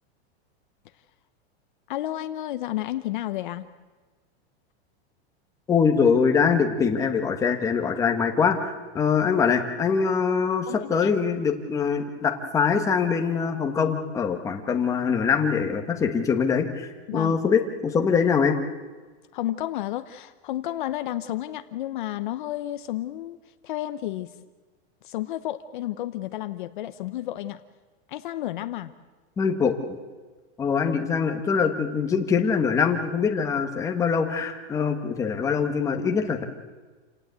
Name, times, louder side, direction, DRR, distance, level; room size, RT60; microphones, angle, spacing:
voice 1, 1.9-3.7 10.7-11.1 17.1-17.4 19.3-23.4 23.6-24.3 25.0-27.6 28.1-28.9, left 14 dB, 50° left, 11 dB, 0.9 m, -31 dB
voice 2, 5.7-18.6 29.4-30.0 30.6-36.4, left 6 dB, 10° left, 4 dB, 1.3 m, -23 dB
28.5 x 18.0 x 8.1 m, 1.4 s
supercardioid pair, 180°, 33 cm